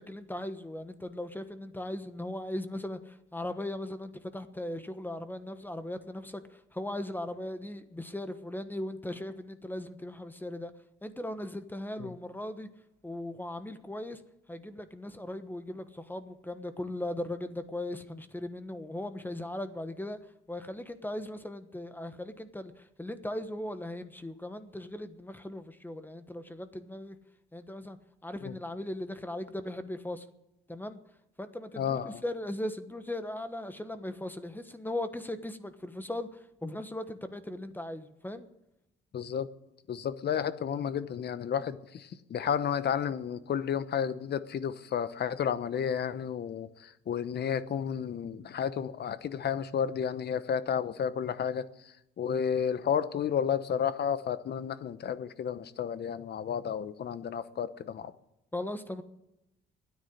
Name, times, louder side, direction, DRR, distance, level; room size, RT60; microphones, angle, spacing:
voice 1, 0.0-10.7 11.0-12.7 13.0-14.2 14.5-20.2 20.5-27.2 27.5-28.0 28.2-30.3 30.7-31.0 31.4-38.5 58.5-59.0, left 1 dB, 10° left, 10 dB, 1.2 m, -38 dB
voice 2, 31.8-32.2 39.1-39.5 39.9-51.7 52.2-58.1, left 8 dB, 55° left, 14 dB, 1.0 m, -32 dB
12.5 x 9.8 x 9.7 m, 0.88 s
cardioid pair, 90°, 20 cm